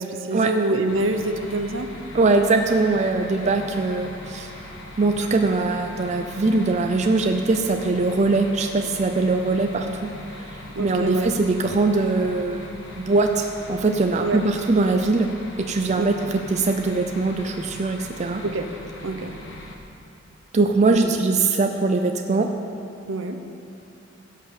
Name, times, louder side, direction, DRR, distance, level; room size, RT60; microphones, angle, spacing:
voice 1, 0.0-1.9 10.7-11.3 14.2-14.4 16.0-16.3 18.4-18.7 19.0-19.3 20.9-21.2 23.1-23.4, right 2 dB, 65° right, 7 dB, 0.7 m, -26 dB
sound 1, 0.9-19.8, left 1 dB, 65° left, 1.2 m, -40 dB
voice 2, 2.1-4.5 5.0-10.1 10.4-15.3 15.6-18.4 20.5-22.5, right 3 dB, 35° right, 4 dB, 0.5 m, -22 dB
16.0 x 5.6 x 6.6 m, 2.9 s
head